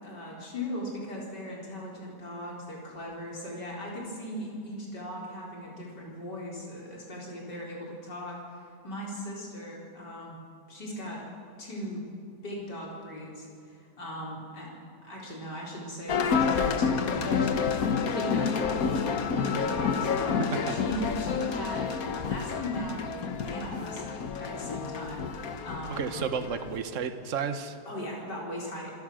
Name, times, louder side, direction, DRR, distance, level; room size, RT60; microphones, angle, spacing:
voice 1, 0.0-10.4 10.7-11.2 11.6-12.0 12.4-13.5 13.7-14.7 15.0-26.1 27.9-28.9, equal, 85° left, -3 dB, 4.9 m, -38 dB
sound 1, 16.1-26.8, left 6 dB, 60° left, 1.5 m, -29 dB
voice 2, 20.4-20.8 25.9-27.8, right 6 dB, 50° right, 8 dB, 1.4 m, -32 dB
26.5 x 16.0 x 6.4 m, 2.4 s
omnidirectional pair, 1.8 m